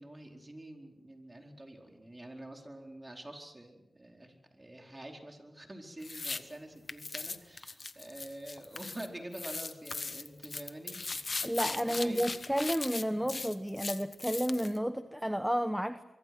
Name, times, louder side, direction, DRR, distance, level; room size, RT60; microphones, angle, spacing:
voice 1, 0.0-12.4 13.1-13.4, right 1 dB, 20° right, 2 dB, 4.6 m, -47 dB
sound 1, 6.0-6.4 6.9-9.1 9.3-14.8, left 3 dB, 45° left, 1.3 m, -39 dB
voice 2, 11.4-16.0, equal, 5° right, 10 dB, 1.0 m, -31 dB
24.5 x 24.0 x 6.3 m, 0.96 s
cardioid pair, 70°, 0 cm